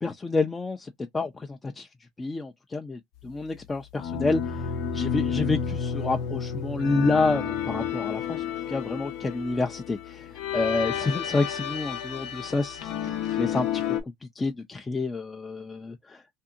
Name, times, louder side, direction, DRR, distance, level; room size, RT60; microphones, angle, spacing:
voice 1, 0.0-1.9 2.2-13.8 14.4-16.2, left 3 dB, 15° left, 0.4 m, -29 dB
sound 1, 4.0-14.0, left 8 dB, 75° left, 0.7 m, -31 dB
2.6 x 2.6 x 2.4 m
supercardioid pair, 105°, 0 cm